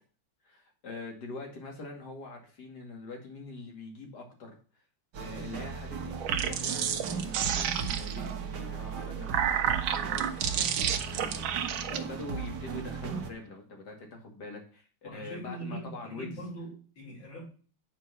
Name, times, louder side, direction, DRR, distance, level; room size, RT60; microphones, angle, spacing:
voice 1, 0.4-4.6 5.2-16.4, left 3 dB, 55° left, 2 dB, 2.8 m, -44 dB
sound 1, 5.1-13.3, right 6 dB, 60° right, 1.6 m, -37 dB
sound 2, 6.1-8.3 9.0-12.0, right 9 dB, 80° right, 1.6 m, -30 dB
voice 2, 15.0-17.5, right 1 dB, 75° left, -6 dB, 5.7 m, -42 dB
8.5 x 4.6 x 5.6 m, 0.38 s
omnidirectional pair, 2.2 m